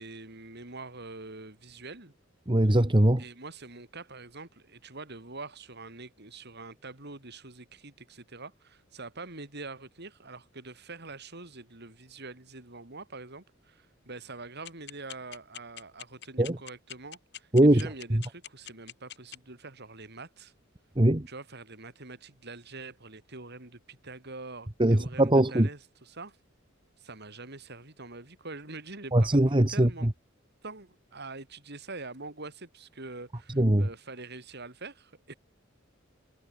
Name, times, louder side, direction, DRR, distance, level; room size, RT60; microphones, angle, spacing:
voice 1, 0.0-2.1 3.2-20.5 21.3-26.4 27.0-30.1 30.6-35.4, right 3 dB, 55° right, 4.8 m, -44 dB
voice 2, 2.5-3.2 16.4-16.6 17.5-17.8 18.1-18.2 21.0-21.3 24.8-25.7 29.1-29.9 33.6-33.8, right 1 dB, 25° right, 1.5 m, -21 dB
sound 1, 14.7-19.4, left 11 dB, 60° left, 5.7 m, -42 dB
head